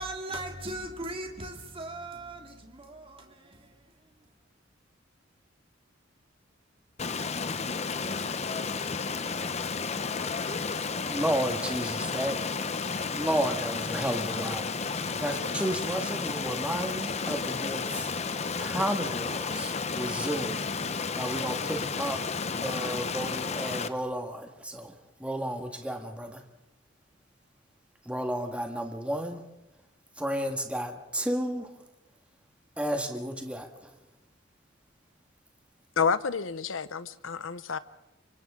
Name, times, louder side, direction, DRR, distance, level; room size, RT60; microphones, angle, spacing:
voice 1, 0.0-3.9, right 1 dB, 30° right, 2.3 m, -39 dB
Stream, 7.0-23.9, left 5 dB, 35° left, 0.8 m, -32 dB
voice 2, 11.1-12.4 13.1-14.7 15.2-18.1 18.6-20.6 21.1-22.2 22.5-26.4 28.1-29.4 30.2-31.7 32.8-33.9, right 1 dB, 5° right, 1.8 m, -32 dB
voice 3, 36.0-37.8, left 6 dB, 85° left, 0.8 m, -29 dB
29.0 x 25.0 x 3.8 m
head